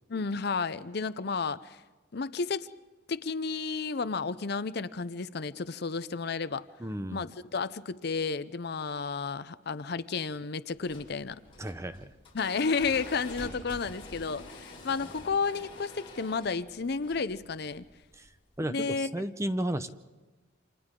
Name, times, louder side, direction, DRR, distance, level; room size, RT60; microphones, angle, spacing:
voice 1, 0.1-1.8 2.1-2.7 3.1-6.7 7.1-11.4 12.3-17.8 18.7-19.1, left 4 dB, 55° left, 0.6 m, -32 dB
voice 2, 6.8-7.2 11.6-12.1 18.2-18.3 18.6-19.9, right 1 dB, 15° right, 0.7 m, -33 dB
sound 1, 10.7-18.6, left 2 dB, 30° left, 5.6 m, -47 dB
29.0 x 26.5 x 3.8 m
head